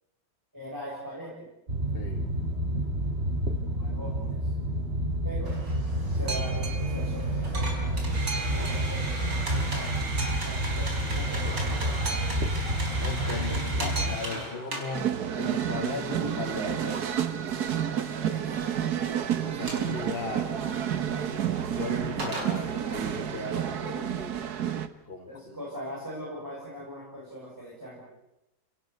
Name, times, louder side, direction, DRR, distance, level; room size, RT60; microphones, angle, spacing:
voice 1, 0.5-1.5 3.7-4.5 5.2-5.6 6.1-10.1 10.4-12.5 13.2-14.5 18.3-18.7 23.5-23.8 25.2-28.2, equal, 10° right, -5 dB, 6.4 m, -41 dB
Boat Water vehicle, 1.7-14.2, right 1 dB, 35° right, 2.2 m, -29 dB
sound 1, 5.4-23.2, right 2 dB, 90° right, 5.3 m, -39 dB
voice 2, 13.0-17.1 19.4-20.5 21.8-24.5 25.1-25.6, left 3 dB, 35° left, 2 dB, 2.1 m, -37 dB
sound 2, 14.9-24.9, right 9 dB, 65° right, 1.7 m, -30 dB
29.5 x 18.0 x 8.1 m, 0.92 s
omnidirectional pair, 1.9 m